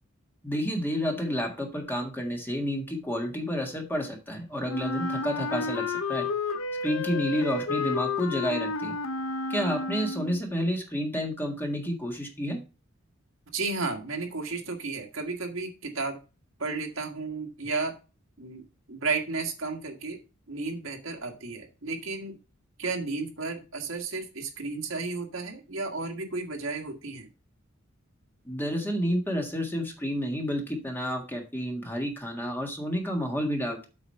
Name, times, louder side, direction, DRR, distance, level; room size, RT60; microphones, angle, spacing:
voice 1, 0.4-6.3 6.8-9.0 9.5-12.6 28.4-33.9, equal, 10° left, 2 dB, 1.6 m, -30 dB
Wind instrument woodwind instrument, 4.7-10.4, left 4 dB, 85° left, 0.9 m, -31 dB
voice 2, 13.5-16.2 16.6-17.9 18.4-18.6 18.9-20.2 20.5-22.4 22.8-27.3, right 3 dB, 70° right, 3 dB, 1.7 m, -33 dB
8.1 x 4.9 x 5.4 m, 0.31 s
head